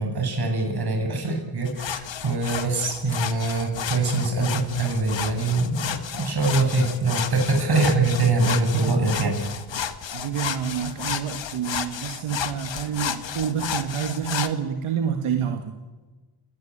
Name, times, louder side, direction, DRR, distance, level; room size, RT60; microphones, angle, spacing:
voice 1, 0.0-9.6, right 3 dB, 50° right, 2 dB, 7.8 m, -23 dB
sound 1, 1.7-14.5, left 8 dB, 65° left, 1.8 m, -32 dB
voice 2, 10.1-15.6, right 8 dB, 85° right, 5 dB, 2.1 m, -28 dB
29.0 x 18.5 x 8.9 m, 1.2 s
cardioid pair, 80°, 48 cm